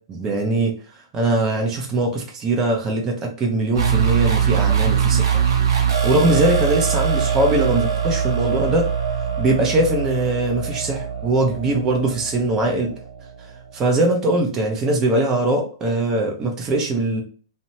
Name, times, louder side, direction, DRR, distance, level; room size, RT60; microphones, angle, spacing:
voice 1, 0.1-0.7 1.1-5.5 6.0-8.9 9.4-12.9 13.7-17.2, right 2 dB, 25° right, 1 dB, 0.7 m, -21 dB
sound 1, 3.7-13.3, right 7 dB, 60° right, 0.7 m, -22 dB
2.6 x 2.1 x 2.9 m, 0.41 s
hypercardioid pair, 115°, 2 cm